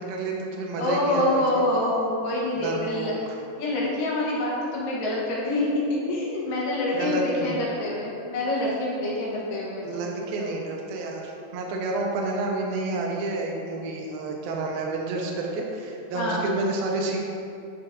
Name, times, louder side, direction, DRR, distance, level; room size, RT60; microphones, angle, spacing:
voice 1, 0.0-1.6 2.6-3.1 6.9-7.6 9.8-17.3, right 2 dB, 80° right, 0 dB, 2.5 m, -29 dB
voice 2, 0.8-3.1 3.6-10.1 10.4-10.5 16.1-16.4, left 1 dB, 70° left, -5 dB, 2.5 m, -26 dB
11.0 x 6.4 x 2.5 m, 2.7 s
omnidirectional pair, 4.5 m